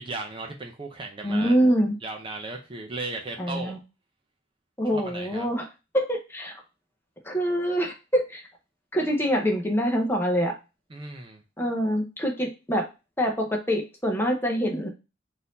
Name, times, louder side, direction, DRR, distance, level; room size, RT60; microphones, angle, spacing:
voice 1, 0.0-1.5 2.0-3.7 4.8-5.5 10.9-11.4, right 3 dB, 25° right, 3 dB, 0.5 m, -36 dB
voice 2, 1.2-2.0 3.4-3.8 4.8-5.7 5.9-6.5 7.3-8.4 8.9-10.6 11.6-12.9 13.2-14.9, equal, 10° left, 2 dB, 0.7 m, -25 dB
3.9 x 2.6 x 4.0 m, 0.28 s
head